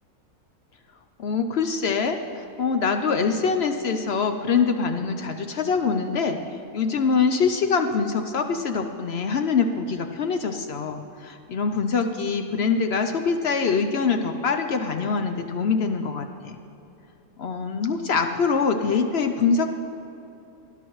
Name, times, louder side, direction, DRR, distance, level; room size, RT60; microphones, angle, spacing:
voice 1, 1.2-6.4 6.7-16.6 17.4-19.7, left 5 dB, 60° left, 6 dB, 0.7 m, -24 dB
19.5 x 11.0 x 3.1 m, 2.9 s
omnidirectional pair, 1.6 m